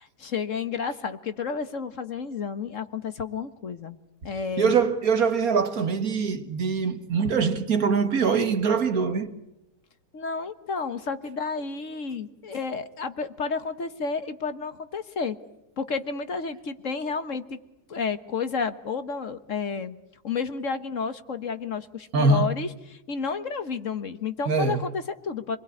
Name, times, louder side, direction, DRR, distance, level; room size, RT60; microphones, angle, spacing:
voice 1, 0.0-4.0 4.2-4.8 10.1-15.4 15.8-17.6 17.9-20.0 20.2-25.6, left 5 dB, 55° left, 1.5 m, -31 dB
voice 2, 4.6-9.3 22.1-22.5 24.5-24.8, right 5 dB, 65° right, 2.0 m, -23 dB
27.0 x 21.0 x 9.7 m
omnidirectional pair, 1.7 m